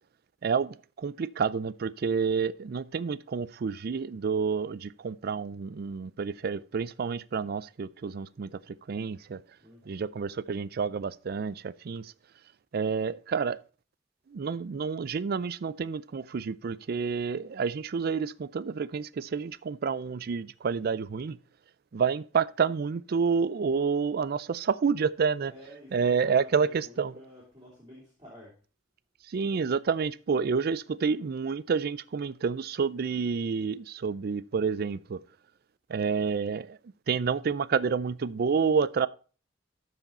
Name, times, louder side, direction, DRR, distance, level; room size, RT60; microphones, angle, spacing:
voice 1, 0.4-8.6 8.9-9.4 9.9-12.1 12.7-13.6 14.3-21.4 21.9-25.5 25.9-27.1 29.3-35.2 35.9-36.8 37.1-39.1, right 5 dB, 55° right, 0.4 m, -29 dB
voice 2, 9.6-10.1 25.5-28.6, equal, 20° right, 3.1 m, -50 dB
13.0 x 4.9 x 4.2 m
head